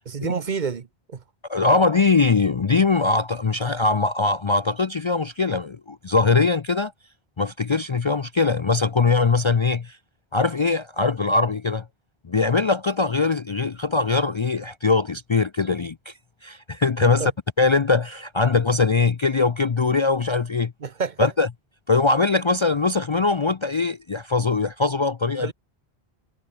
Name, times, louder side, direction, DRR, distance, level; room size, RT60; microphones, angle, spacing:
voice 1, 0.1-1.2 17.2-17.3 20.8-21.3 25.4-25.5, right 5 dB, 50° right, 1.0 m, -28 dB
voice 2, 1.5-6.9 7.4-10.0 10.3-11.8 12.2-16.1 16.4-17.3 17.6-20.7 21.2-21.5 21.9-25.5, left 4 dB, 35° left, 0.5 m, -21 dB
omnidirectional pair, 1.1 m